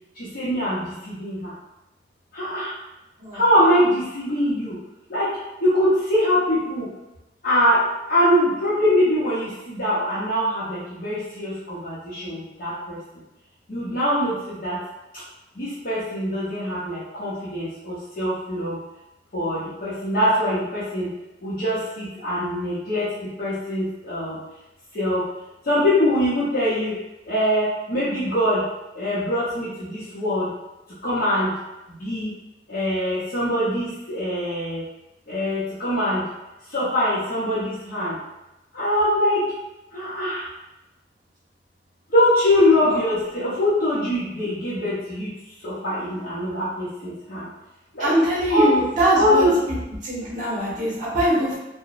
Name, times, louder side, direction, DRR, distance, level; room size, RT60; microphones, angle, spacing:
voice 1, 0.2-1.5 2.3-2.7 3.3-4.8 5.1-6.9 7.4-13.0 13.7-14.8 15.6-18.8 19.3-21.1 21.4-24.4 24.9-25.3 25.7-27.0 27.3-28.7 29.0-30.5 31.0-31.6 32.0-32.3 32.7-34.8 35.3-36.3 36.7-38.1 38.7-39.5 39.9-40.4 42.1-45.3 45.6-47.5 47.9-48.2 48.5-48.7 49.1-49.6, equal, 55° left, -11 dB, 0.7 m, -23 dB
voice 2, 48.0-49.5 50.0-51.6, right 1 dB, 45° right, -7 dB, 1.1 m, -22 dB
2.9 x 2.1 x 2.5 m, 0.97 s
head